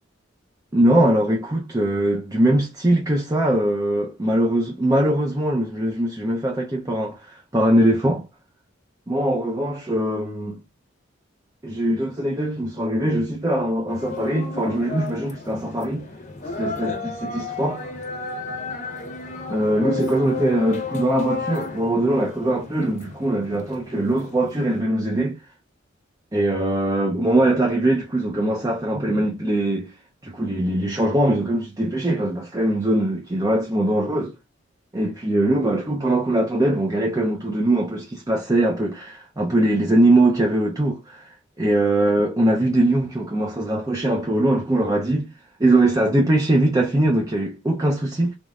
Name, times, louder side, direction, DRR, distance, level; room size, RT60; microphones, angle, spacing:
voice 1, 0.7-8.2 9.1-10.6 11.6-16.1 16.6-16.9 17.2-17.8 19.5-25.4 26.3-29.9 30.2-34.3 34.9-45.3 45.6-48.3, right 1 dB, 20° right, 0.6 m, -21 dB
sound 1, 13.9-24.8, left 4 dB, 40° left, 1.0 m, -33 dB
4.1 x 3.6 x 2.4 m
head